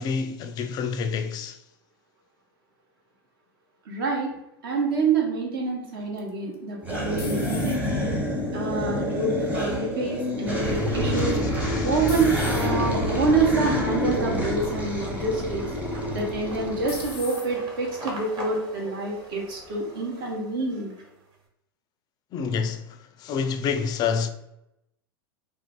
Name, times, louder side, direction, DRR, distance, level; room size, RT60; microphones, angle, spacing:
voice 1, 0.0-1.6 11.1-11.3 11.6-11.9 22.3-24.3, left 6 dB, 30° left, 0.3 m, -28 dB
voice 2, 3.8-4.3 4.6-7.8 8.5-11.4 11.8-15.6 16.1-20.9, right 3 dB, 65° right, 1.0 m, -27 dB
sound 1, 6.2-8.1 8.6-9.2 11.2-11.6 12.1-12.7 13.5-13.7 14.1-14.2 16.2-16.6 16.9-17.5, left 4 dB, 90° left, 0.5 m, -40 dB
sound 2, 6.8-17.2, left 1 dB, 10° right, 0.8 m, -27 dB
sound 3, 6.8-7.4 7.8-21.4, right 1 dB, 35° right, 1.1 m, -44 dB
2.5 x 2.3 x 3.7 m
figure-of-eight pair, 90°, 13 cm